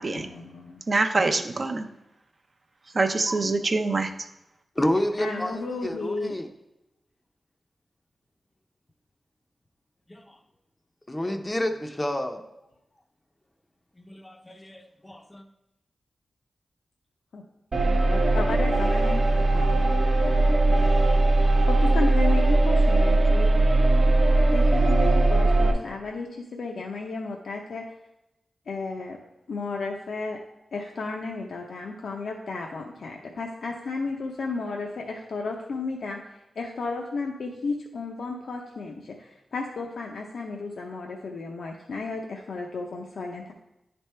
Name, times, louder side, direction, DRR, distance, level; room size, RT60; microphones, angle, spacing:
voice 1, 0.0-0.8 5.2-6.3 17.3-17.4 17.8-23.5 24.5-27.9 28.7-29.2 29.5-30.4 30.7-43.5, left 3 dB, 75° left, 0 dB, 0.6 m, -34 dB
voice 2, 0.9-1.9 2.9-4.1, right 3 dB, 40° right, 6 dB, 0.5 m, -24 dB
voice 3, 4.8-6.5 10.1-10.4 11.1-12.4 14.0-15.4, left 1 dB, 15° left, 5 dB, 0.5 m, -29 dB
sound 1, 17.7-25.7, right 2 dB, 55° right, 0.9 m, -20 dB
10.0 x 3.4 x 4.3 m, 0.90 s
wide cardioid pair, 115°, 0 cm